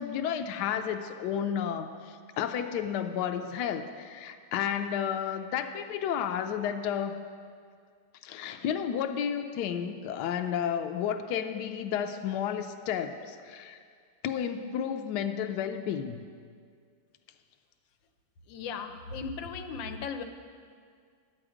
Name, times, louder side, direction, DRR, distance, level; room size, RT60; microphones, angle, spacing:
voice 1, 0.0-7.2 8.2-13.8 14.2-16.2, left 8 dB, 75° left, 7 dB, 1.1 m, -32 dB
voice 2, 18.4-20.2, left 5 dB, 90° left, 6 dB, 1.5 m, -37 dB
11.5 x 8.7 x 4.9 m, 2.1 s
omnidirectional pair, 2.0 m